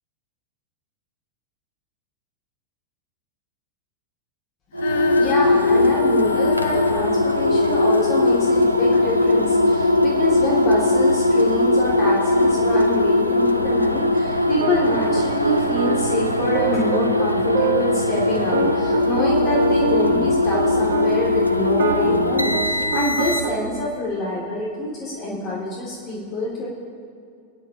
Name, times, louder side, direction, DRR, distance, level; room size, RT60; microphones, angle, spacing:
sound 1, 4.7-23.7, left 2 dB, 90° right, 0.6 m, -20 dB
Female singing, 4.8-11.1 11.8-11.9, left 9 dB, 55° left, 0.7 m, -32 dB
voice 1, 5.2-26.7, left 1 dB, 35° left, -4 dB, 2.4 m, -26 dB
sound 2, 14.6-21.3 21.7-23.5, right 5 dB, 60° right, 1.3 m, -25 dB
22.5 x 10.0 x 2.9 m, 2.5 s
figure-of-eight pair, 90°, 0 cm